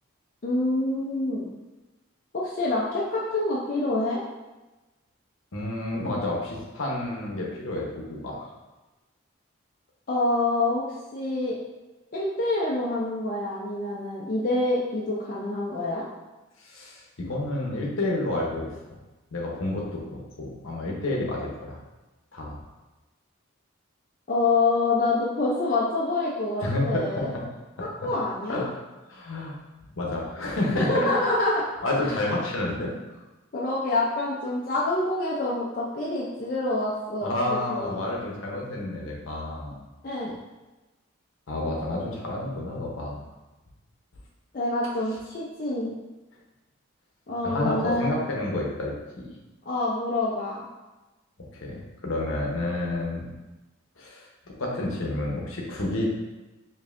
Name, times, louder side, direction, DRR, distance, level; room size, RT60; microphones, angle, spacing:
voice 1, 0.4-1.5 2.3-4.2 10.1-11.6 12.1-16.1 24.3-27.3 28.0-28.6 30.7-31.7 33.5-38.0 40.0-40.3 44.5-45.9 47.3-48.1 49.7-50.7, left 2 dB, 40° left, -5 dB, 0.5 m, -26 dB
voice 2, 5.5-8.5 16.6-18.7 19.3-21.8 22.3-22.6 26.6-27.4 28.0-28.1 28.5-28.6 29.1-29.5 30.0-31.1 31.8-32.9 37.2-39.8 41.5-43.2 47.4-49.3 51.5-53.3 54.0-54.3 54.6-56.1, left 1 dB, 70° left, -2 dB, 0.9 m, -30 dB
5.2 x 2.6 x 2.5 m, 1.1 s
head